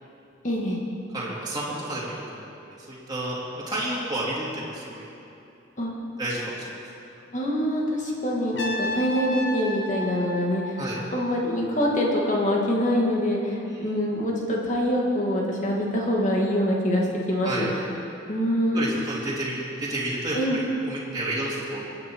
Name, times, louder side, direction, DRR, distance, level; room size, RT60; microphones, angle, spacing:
voice 1, 0.4-0.8 5.8-5.9 7.3-10.8 11.1-17.7 18.3-19.0 20.3-20.6, equal, 40° left, -2 dB, 2.3 m, -25 dB
voice 2, 1.1-3.4 3.7-5.1 6.2-6.7 10.8-11.0 13.6-13.9 17.4-17.7 18.7-21.8, right 1 dB, 20° right, -7 dB, 3.0 m, -31 dB
Trumpet, 8.5-11.5, left 1 dB, 60° left, 1.5 m, -33 dB
23.0 x 9.5 x 4.7 m, 2.7 s
head